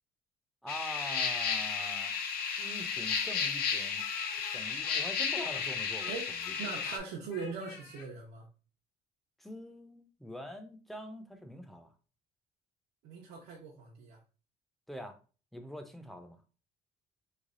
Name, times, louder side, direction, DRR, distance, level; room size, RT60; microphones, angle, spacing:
voice 1, 0.6-2.2 2.6-4.1 4.5-6.1 9.4-11.9 14.9-15.2 15.5-16.4, equal, ahead, 0.5 m, -44 dB
sound 1, 0.7-7.0, left 6 dB, 65° left, 0.6 m, -33 dB
Speech, 3.1-5.7 6.0-7.0 7.3-8.1, left 5 dB, 90° left, 0.9 m, -50 dB
voice 2, 6.0-8.5 13.0-14.2, right 5 dB, 85° right, 0.8 m, -41 dB
3.2 x 3.2 x 2.5 m
cardioid pair, 110°, 17 cm